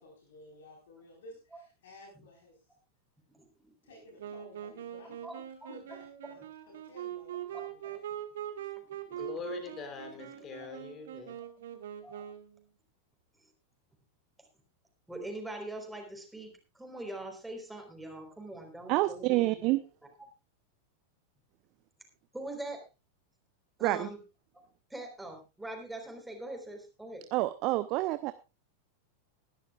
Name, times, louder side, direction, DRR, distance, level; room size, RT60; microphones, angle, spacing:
voice 1, 0.0-2.6 3.8-5.4 5.7-8.0, left 1 dB, 60° left, 0 dB, 4.4 m, -54 dB
Wind instrument woodwind instrument, 4.2-12.6, right 11 dB, 60° right, 1.7 m, -42 dB
voice 2, 7.5-7.9 8.8-8.9 9.1-9.2 10.4-10.7 12.0-12.2 15.1-19.7 22.3-22.8 23.8-24.2 24.9-27.2, right 1 dB, 5° right, 2 dB, 4.2 m, -43 dB
voice 3, 9.1-11.4, left 6 dB, 30° left, 7 dB, 3.4 m, -43 dB
voice 4, 18.9-19.8 23.8-24.1 27.3-28.3, right 18 dB, 40° right, 13 dB, 0.7 m, -28 dB
20.0 x 12.0 x 2.4 m, 0.28 s
figure-of-eight pair, 90°, 0 cm